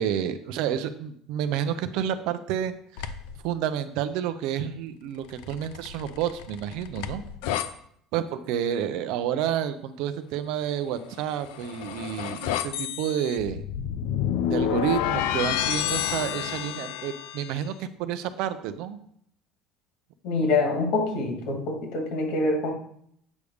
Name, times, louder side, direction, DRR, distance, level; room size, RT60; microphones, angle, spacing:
voice 1, 0.0-2.7 3.0-3.1 3.4-7.2 8.1-13.6 14.5-19.0, right 9 dB, 70° right, 11 dB, 0.6 m, -29 dB
sound 1, 3.0-3.4 5.3-7.7 11.2-17.6, left 10 dB, 85° left, 0.5 m, -30 dB
voice 2, 20.2-22.7, left 3 dB, 70° left, 2 dB, 2.3 m, -25 dB
8.3 x 3.5 x 6.4 m, 0.67 s
cardioid pair, 150°, 0 cm